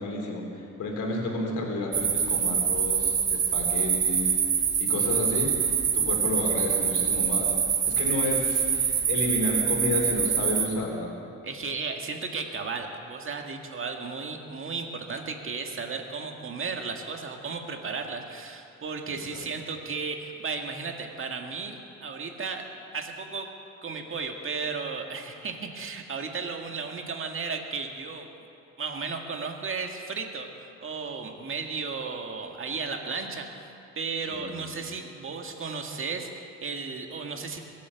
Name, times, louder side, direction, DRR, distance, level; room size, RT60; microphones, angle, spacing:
voice 1, 0.0-4.4 4.8-7.5 7.9-11.1 19.0-19.4 34.3-34.7, left 2 dB, 80° left, 0 dB, 3.4 m, -31 dB
sound 1, 1.9-10.7, right 7 dB, 60° right, 2.1 m, -25 dB
voice 2, 11.4-22.6 22.9-23.5 23.8-28.3 28.8-33.6 34.0-37.6, right 4 dB, 45° right, 3 dB, 1.9 m, -34 dB
23.0 x 8.6 x 7.0 m, 2.6 s
cardioid pair, 90°, 30 cm